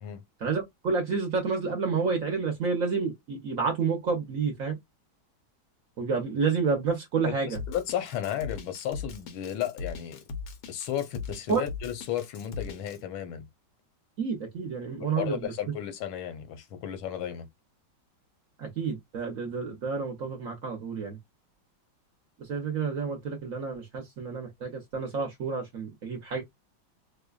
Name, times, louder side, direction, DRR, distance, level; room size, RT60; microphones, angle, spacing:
voice 1, 0.4-4.8 6.0-7.6 11.5-11.6 14.2-15.4 18.6-21.2 22.5-26.4, right 5 dB, 55° right, 0.9 m, -29 dB
voice 2, 7.3-10.2 10.7-13.5 15.0-17.5, left 10 dB, 80° left, 1.6 m, -34 dB
Drum kit, 7.5-13.0, left 4 dB, 65° left, 0.9 m, -39 dB
4.9 x 2.2 x 2.3 m
omnidirectional pair, 2.2 m